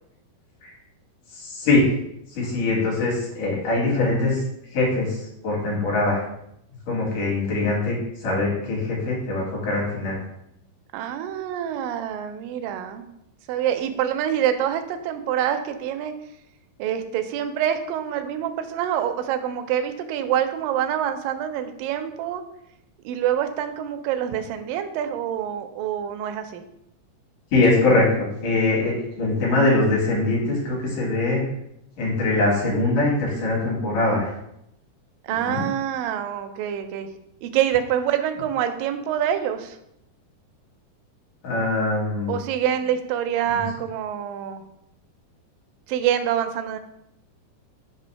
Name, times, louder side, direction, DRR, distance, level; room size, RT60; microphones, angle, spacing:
voice 1, 1.3-1.8 2.4-4.4 4.7-6.2 6.9-7.9 8.2-10.2 27.5-31.4 32.0-34.3 35.3-35.6 41.4-42.4 43.5-43.6, left 2 dB, 65° left, -4 dB, 3.5 m, -22 dB
voice 2, 10.9-13.0 13.5-16.1 16.8-22.4 23.1-26.6 35.2-37.1 37.4-39.8 42.3-44.6 45.9-46.8, right 10 dB, 80° right, 7 dB, 2.2 m, -26 dB
6.9 x 2.7 x 5.7 m, 0.78 s
omnidirectional pair, 4.0 m